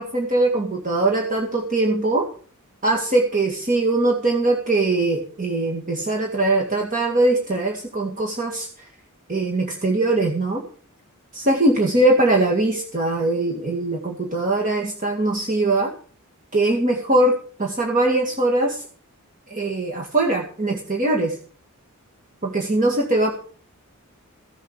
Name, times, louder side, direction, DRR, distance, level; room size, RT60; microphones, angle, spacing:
voice 1, 0.0-2.3 2.8-8.7 9.3-10.6 11.3-15.9 16.5-18.8 19.5-21.4 22.4-23.3, right 2 dB, 35° right, 0 dB, 2.1 m, -21 dB
15.5 x 7.3 x 7.3 m, 0.42 s
head